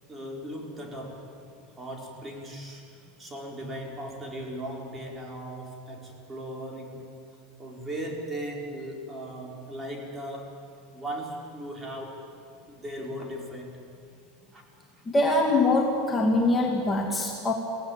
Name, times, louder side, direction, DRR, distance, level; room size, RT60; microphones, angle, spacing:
voice 1, 0.1-1.3 1.8-7.1 7.6-10.6 10.9-12.2 12.7-13.9 14.5-14.6, right 1 dB, 20° right, 0 dB, 4.5 m, -38 dB
voice 2, 15.1-17.5, left 2 dB, 15° left, 0 dB, 2.5 m, -23 dB
21.5 x 17.0 x 9.0 m, 2.4 s
supercardioid pair, 120°, 0 cm